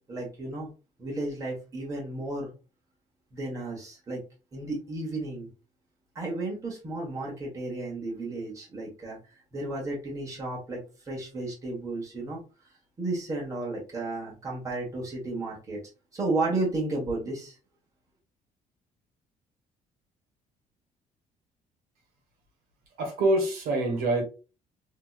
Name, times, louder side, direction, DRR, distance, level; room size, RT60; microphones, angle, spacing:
voice 1, 0.1-0.7 1.0-2.5 3.3-4.2 4.5-5.5 6.1-9.2 9.5-10.8 11.0-12.4 13.0-15.8 16.1-17.6, right 2 dB, 20° right, -3 dB, 1.3 m, -33 dB
voice 2, 23.0-24.2, right 2 dB, 90° right, 2 dB, 1.4 m, -25 dB
3.5 x 2.9 x 2.4 m, 0.32 s
cardioid pair, 150°, 14 cm